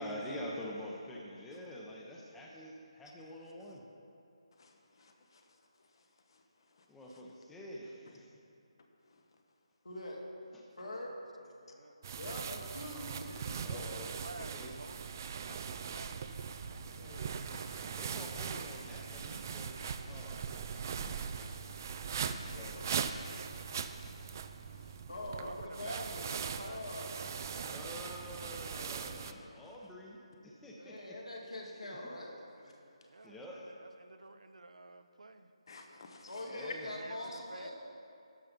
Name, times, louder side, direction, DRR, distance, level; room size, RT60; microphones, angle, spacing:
voice 1, 0.0-3.8 6.9-8.4 13.6-14.1 14.5-14.7 17.9-19.8 20.1-20.8 22.6-23.1 27.6-31.2 33.2-33.6 36.5-36.9, left 1 dB, 5° left, -3 dB, 0.8 m, -46 dB
voice 2, 4.6-5.4 6.3-6.4 6.8-6.9 15.5-15.7 15.9-16.0 16.7-17.2 17.5-18.3 18.8-18.9 19.3-20.2 20.7-22.0 22.2-22.8 23.6-23.7 24.0-24.3 24.7-25.0 29.0-29.5 35.7-36.4, left 3 dB, 50° left, 4 dB, 1.1 m, -57 dB
voice 3, 9.8-10.2 10.8-11.2 11.6-13.9 16.9-17.5 19.4-19.6 19.9-20.3 21.7-22.0 22.4-22.9 23.7-23.8 24.0-24.4 25.1-27.3 30.8-32.7 36.3-37.7, left 1 dB, 85° left, -2 dB, 2.4 m, -45 dB
voice 4, 11.4-12.0 14.2-15.2 15.6-16.2 25.3-28.6 33.0-35.5 36.6-37.7, right 3 dB, 80° right, 9 dB, 0.7 m, -51 dB
sound 1, 12.0-29.3, right 6 dB, 30° right, 0.4 m, -40 dB
12.5 x 5.8 x 5.2 m, 2.6 s
figure-of-eight pair, 165°, 3 cm